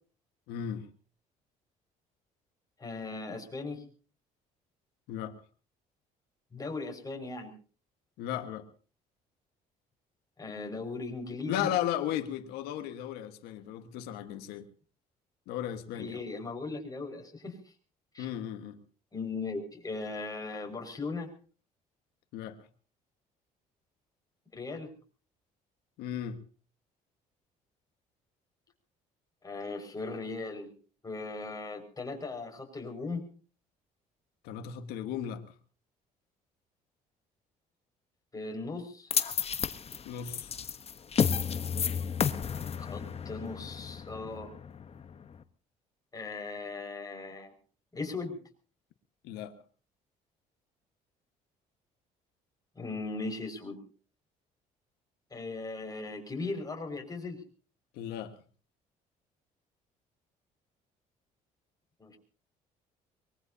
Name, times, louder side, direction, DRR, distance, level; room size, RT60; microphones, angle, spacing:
voice 1, 0.5-0.9 5.1-5.3 8.2-8.6 11.5-14.7 15.5-16.2 18.2-18.8 22.3-22.6 26.0-26.4 34.4-35.4 40.0-40.5 49.2-49.6 57.9-58.3, left 10 dB, 80° left, 1.5 m, -35 dB
voice 2, 2.8-3.9 6.5-7.5 10.4-11.7 15.9-17.6 18.1-18.3 19.1-21.3 24.5-24.9 29.4-30.7 31.0-33.2 38.3-39.1 42.8-44.5 46.1-47.5 47.9-48.4 52.8-53.8 55.3-57.4 62.0-62.2, left 3 dB, 25° left, 5.6 m, -38 dB
sound 1, 39.1-45.4, left 7 dB, 40° left, 1.1 m, -32 dB
24.0 x 21.0 x 2.8 m
supercardioid pair, 75°, 16 cm